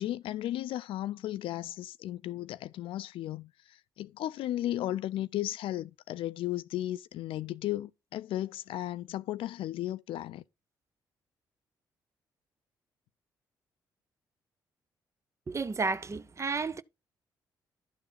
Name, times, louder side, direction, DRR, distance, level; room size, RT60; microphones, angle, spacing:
voice 1, 0.0-10.4, left 13 dB, 70° left, 0.4 m, -35 dB
voice 2, 15.5-16.8, right 4 dB, 30° right, 0.5 m, -32 dB
11.5 x 3.8 x 4.2 m
hypercardioid pair, 50°, 9 cm